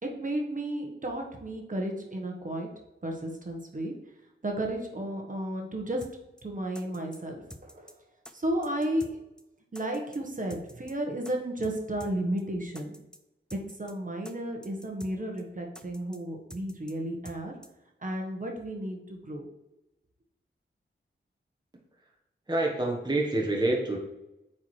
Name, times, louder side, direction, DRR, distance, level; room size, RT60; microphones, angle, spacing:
voice 1, 0.0-2.7 3.0-3.9 4.4-6.1 6.4-7.9 8.3-9.2 9.7-12.9 13.5-17.5 18.0-19.5, right 1 dB, 40° right, 1 dB, 1.2 m, -33 dB
sound 1, 6.0-6.1 6.4-6.5 6.7-7.2 7.5-7.9 8.2-8.3 8.6-9.1 9.4-9.5 9.7-10.2 10.5-10.9 11.2-11.3 11.6-11.7 12.0-12.1 12.4-12.5 12.7-13.2 13.5-13.9 14.2-14.3 14.6-15.1 15.4-15.5 15.7-16.2 16.5-16.9 17.2-17.4 17.6-17.7, equal, 5° left, 0.6 m, -47 dB
voice 2, 22.5-24.0, right 2 dB, 20° right, 0 dB, 1.1 m, -27 dB
8.5 x 4.4 x 3.2 m, 0.90 s
wide cardioid pair, 70°, 21 cm